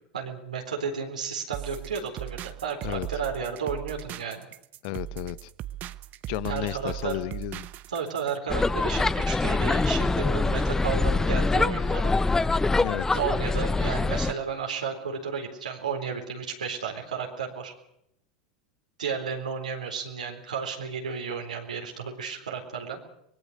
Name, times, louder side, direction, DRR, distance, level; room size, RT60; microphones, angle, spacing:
voice 1, 0.1-4.5 6.5-7.1 7.9-12.1 13.1-17.7 19.0-23.0, right 6 dB, 85° right, 4.1 m, -33 dB
sound 1, 1.5-8.4, right 13 dB, 45° right, 1.0 m, -38 dB
voice 2, 4.8-5.5 6.3-7.7 12.8-13.0, left 19 dB, 60° left, 1.0 m, -32 dB
sound 2, 8.5-14.3, left 3 dB, 15° left, 0.9 m, -24 dB
24.0 x 20.5 x 6.7 m
hypercardioid pair, 85°, 4 cm